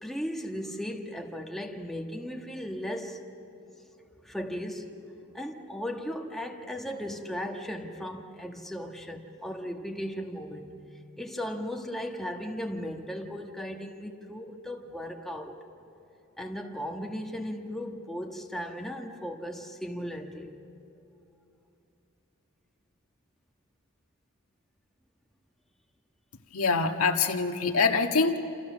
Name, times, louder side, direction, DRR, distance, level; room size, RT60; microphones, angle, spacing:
voice 1, 0.0-3.2 4.2-5.0 5.3-10.8 11.2-15.6 16.4-20.5, equal, ahead, 1.4 m, -36 dB
voice 2, 26.5-28.4, left 4 dB, 85° left, 1.6 m, -24 dB
29.0 x 28.0 x 6.3 m
head